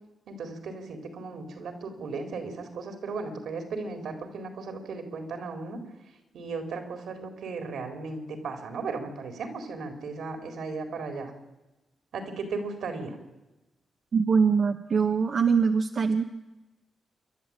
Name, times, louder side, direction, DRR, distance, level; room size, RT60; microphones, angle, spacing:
voice 1, 0.3-5.8 6.3-11.3 12.1-13.2, right 4 dB, 85° right, 6 dB, 4.2 m, -36 dB
voice 2, 14.1-16.2, right 5 dB, 55° right, 5 dB, 1.1 m, -23 dB
27.0 x 11.5 x 9.0 m, 1.0 s
cardioid pair, 80°, 0 cm